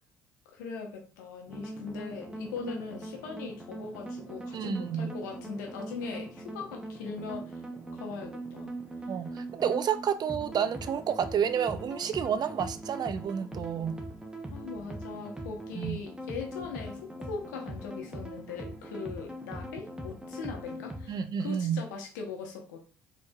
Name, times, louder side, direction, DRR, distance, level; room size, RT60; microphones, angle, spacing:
voice 1, 0.5-7.6 7.9-8.7 9.4-9.5 14.5-22.8, left 4 dB, 85° left, 0.9 m, -40 dB
sound 1, 1.5-21.2, right 1 dB, 10° right, 0.8 m, -41 dB
voice 2, 4.5-5.1 9.1-14.0 15.7-16.0 21.1-21.8, right 8 dB, 45° right, 0.4 m, -30 dB
4.3 x 3.1 x 2.3 m
hypercardioid pair, 65°, 10 cm